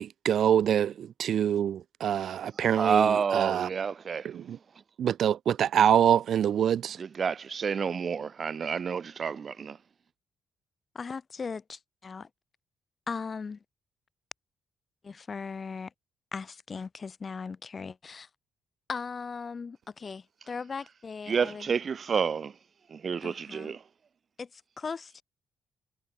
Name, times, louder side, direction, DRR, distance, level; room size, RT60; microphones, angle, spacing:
voice 1, 0.0-3.7 4.2-4.6 5.0-7.0, right 9 dB, 65° right, 0.4 m, -25 dB
voice 2, 2.7-4.3 7.0-9.8 21.3-22.5 22.9-23.8, right 6 dB, 45° right, 0.8 m, -29 dB
voice 3, 10.9-12.3 13.1-13.6 15.0-15.9 16.3-18.3 18.9-21.7 23.2-23.8 24.4-25.2, left 5 dB, 35° left, 6.5 m, -38 dB
cardioid pair, 90°, 0 cm